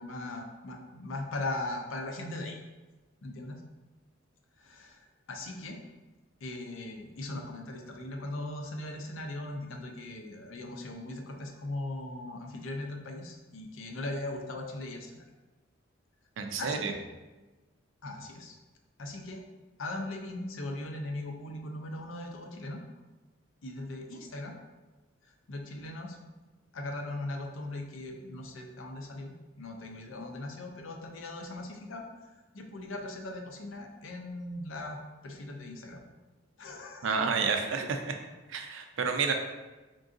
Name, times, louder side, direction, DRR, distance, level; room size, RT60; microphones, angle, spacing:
voice 1, 0.0-2.6 3.2-3.6 4.6-5.8 6.4-15.2 16.6-17.0 18.0-18.6 19.0-19.4 19.8-22.8 23.6-24.5 25.5-26.2 26.7-32.0 32.5-36.0 36.6-37.1, left 2 dB, 75° left, 3 dB, 0.6 m, -39 dB
voice 2, 16.4-16.9 37.0-38.2 38.5-39.3, right 5 dB, 70° right, 5 dB, 0.5 m, -30 dB
3.8 x 3.7 x 2.5 m, 1.2 s
head